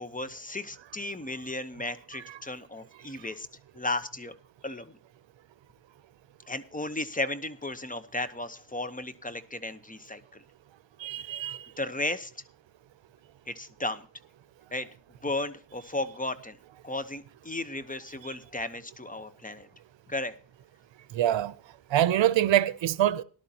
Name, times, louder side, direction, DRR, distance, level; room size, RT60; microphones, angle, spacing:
voice 1, 0.0-3.5 3.7-4.3 4.6-5.0 6.5-10.4 11.8-12.3 13.5-14.1 14.7-14.9 15.2-16.6 16.8-19.7 20.1-20.3, left 2 dB, 20° left, 0.9 m, -34 dB
voice 2, 11.0-11.6 21.1-21.5 21.9-23.2, right 12 dB, 90° right, 0.7 m, -24 dB
18.5 x 11.5 x 2.9 m
wide cardioid pair, 95°, 44 cm